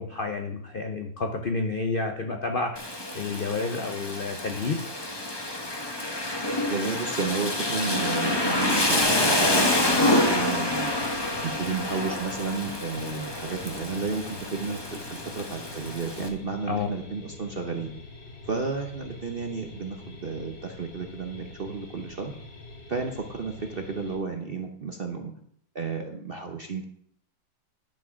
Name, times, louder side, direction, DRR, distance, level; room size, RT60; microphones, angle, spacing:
voice 1, 0.0-4.8 16.7-16.9, left 3 dB, 55° left, 4 dB, 0.6 m, -30 dB
Rain, 2.8-16.3, left 1 dB, 15° left, 1.1 m, -27 dB
voice 2, 6.7-10.9 11.4-17.9 18.4-22.3 22.9-25.3 25.7-26.9, right 4 dB, 45° right, 4 dB, 0.7 m, -32 dB
sound 1, 9.0-24.2, left 3 dB, 75° left, 2.8 m, -45 dB
10.5 x 6.0 x 6.2 m, 0.68 s
omnidirectional pair, 2.0 m